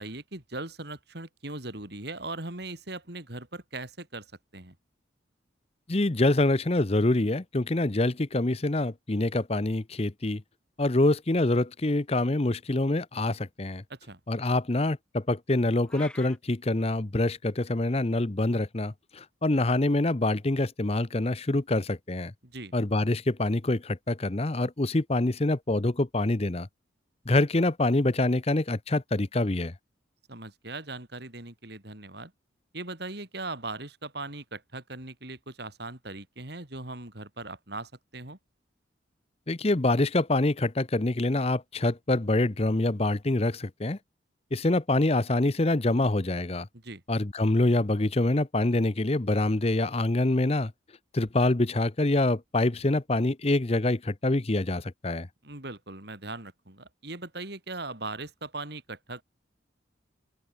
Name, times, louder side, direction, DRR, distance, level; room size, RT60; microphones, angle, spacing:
voice 1, 0.0-4.7 13.9-14.2 22.4-22.7 30.3-32.3 32.7-38.4 46.7-47.0 55.4-59.2, right 2 dB, 55° right, 3.3 m, -39 dB
voice 2, 5.9-10.4 10.8-13.8 14.3-22.3 22.7-26.7 27.3-29.7 39.5-44.0 44.5-46.7 47.1-50.7 51.1-55.3, left 2 dB, 30° left, 0.8 m, -25 dB
sound 1, 15.9-16.4, left 1 dB, 5° left, 7.8 m, -44 dB
open air
head